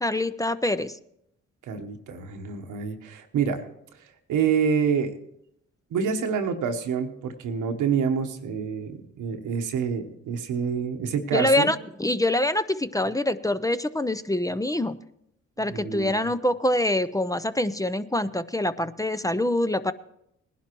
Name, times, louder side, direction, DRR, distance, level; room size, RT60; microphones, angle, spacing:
voice 1, 0.0-1.0 11.3-15.0 15.6-19.9, left 1 dB, 10° left, 13 dB, 0.5 m, -25 dB
voice 2, 1.7-3.7 4.3-5.1 5.9-11.7 15.7-16.1, right 6 dB, 90° right, 6 dB, 1.1 m, -27 dB
19.0 x 11.0 x 3.0 m, 0.76 s
cardioid pair, 60°, 30 cm